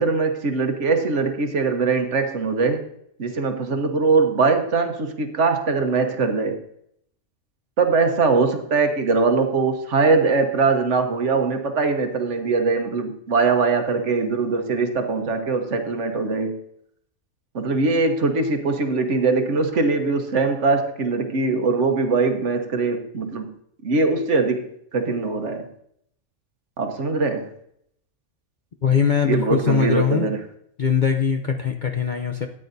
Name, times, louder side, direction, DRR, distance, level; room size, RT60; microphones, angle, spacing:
voice 1, 0.0-2.9 3.2-6.6 7.8-16.6 17.5-23.5 23.8-25.7 26.8-27.5 29.2-30.4, right 4 dB, 60° right, 1.4 m, -21 dB
voice 2, 28.8-30.3 30.8-32.5, left 6 dB, 45° left, 0.6 m, -21 dB
13.5 x 9.1 x 2.6 m
omnidirectional pair, 1.5 m